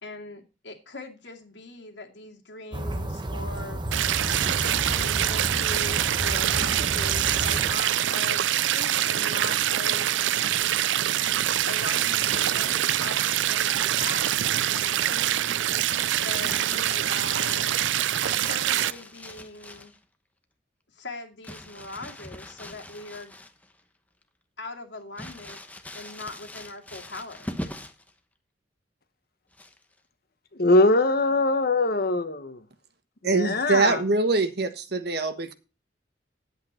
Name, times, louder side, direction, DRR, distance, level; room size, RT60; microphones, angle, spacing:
voice 1, 0.0-3.8 4.6-10.1 11.7-14.3 15.0-15.8 16.2-17.8 18.4-19.9 20.9-23.4 24.6-25.6 25.9-27.5, left 2 dB, 75° left, 2.4 m, -40 dB
sound 1, 2.7-7.7, right 1 dB, 25° right, 1.0 m, -32 dB
sound 2, 3.9-18.9, right 12 dB, 85° right, 0.4 m, -25 dB
Crumpling crinkling, 12.1-14.5 16.4-20.0 21.4-23.8 24.2-24.3 25.2-28.1 29.5-30.0, left 1 dB, 10° left, 1.1 m, -42 dB
voice 2, 30.6-32.6 33.2-34.0, left 2 dB, 55° left, 1.2 m, -22 dB
voice 3, 33.2-35.5, right 3 dB, 60° right, 1.2 m, -24 dB
10.5 x 8.3 x 4.4 m
head